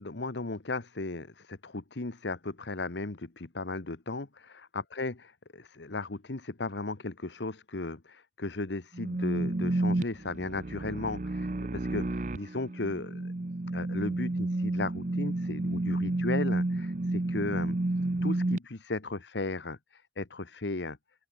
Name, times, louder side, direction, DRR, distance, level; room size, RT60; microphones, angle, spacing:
voice 1, 0.0-5.1 5.5-13.3 13.7-17.8 18.2-21.0, left 2 dB, 80° left, 1.2 m, -36 dB
sound 1, 8.9-18.6, right 2 dB, 45° right, 0.8 m, -31 dB
open air
head